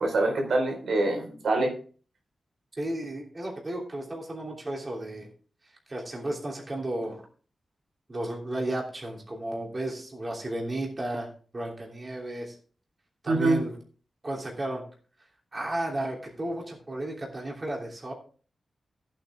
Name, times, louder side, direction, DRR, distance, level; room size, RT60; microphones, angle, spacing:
voice 1, 0.0-1.7 13.3-13.6, right 2 dB, 85° right, 2 dB, 4.1 m, -25 dB
voice 2, 2.8-5.3 5.9-7.2 8.1-12.5 13.2-13.7 14.2-14.8 15.5-18.1, right 1 dB, 25° right, -1 dB, 3.1 m, -33 dB
14.5 x 8.9 x 3.5 m, 0.41 s
wide cardioid pair, 160°, 0 cm